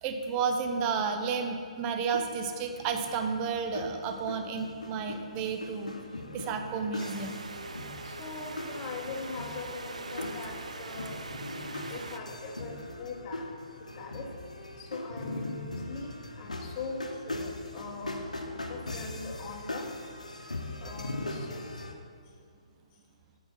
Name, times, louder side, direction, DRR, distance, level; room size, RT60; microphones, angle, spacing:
voice 1, 0.0-6.0 6.3-7.4, right 5 dB, 25° right, 5 dB, 0.6 m, -31 dB
sound 1, 2.1-21.9, left 2 dB, 80° left, 0.9 m, -40 dB
sound 2, 7.0-12.2, right 3 dB, 70° right, 0.5 m, -42 dB
voice 2, 8.0-11.2 11.9-13.5 13.8-14.3 14.8-19.9 20.8-21.7, left 4 dB, 25° left, 0 dB, 1.1 m, -41 dB
8.8 x 4.6 x 5.8 m, 2.2 s
figure-of-eight pair, 130°, 4 cm